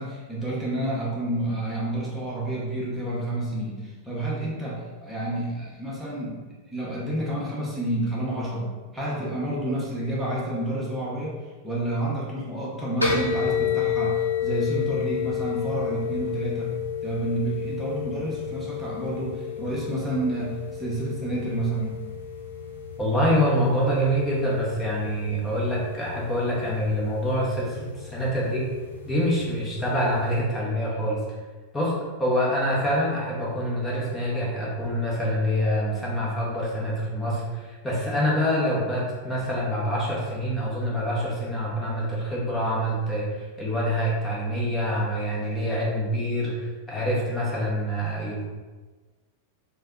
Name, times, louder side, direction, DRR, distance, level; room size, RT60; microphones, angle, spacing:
voice 1, 0.0-6.4 6.7-8.7 8.9-11.3 11.6-16.7 17.0-22.0, right 1 dB, 10° right, -7 dB, 1.0 m, -29 dB
sound 1, 13.0-30.4, left 7 dB, 80° left, 0.8 m, -32 dB
voice 2, 23.0-28.7 29.0-31.2 31.7-31.9 32.2-48.4, equal, 15° left, -6 dB, 1.0 m, -26 dB
3.3 x 2.2 x 3.7 m, 1.3 s
figure-of-eight pair, 90°, 0 cm